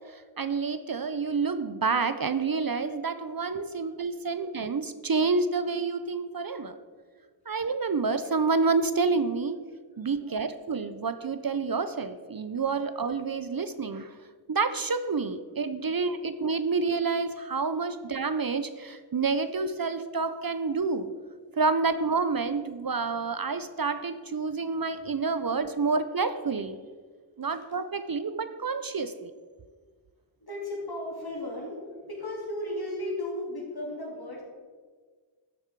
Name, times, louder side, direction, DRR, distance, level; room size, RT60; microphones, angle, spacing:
voice 1, 0.1-6.8 7.5-9.6 10.0-14.1 14.5-21.1 21.6-26.8 27.4-29.3, right 4 dB, 50° right, 11 dB, 0.6 m, -28 dB
voice 2, 3.5-3.9 4.3-4.5 7.5-7.6 10.0-10.5 16.4-16.9 24.7-25.0 27.4-27.6 30.4-34.4, left 1 dB, 55° left, -3 dB, 3.4 m, -37 dB
12.5 x 7.1 x 4.6 m, 1.5 s
wide cardioid pair, 40°, 46 cm